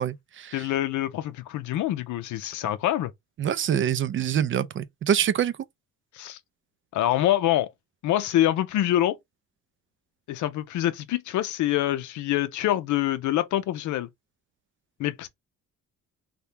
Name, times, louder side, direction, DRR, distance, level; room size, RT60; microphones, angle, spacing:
voice 1, 0.0-0.5 3.4-5.5, right 9 dB, 45° right, 0.4 m, -25 dB
voice 2, 0.5-3.1 6.1-6.4 6.9-7.7 8.0-9.2 10.3-14.1 15.0-15.3, left 13 dB, 75° left, 0.5 m, -25 dB
2.8 x 2.3 x 3.2 m
cardioid pair, 90°, 30 cm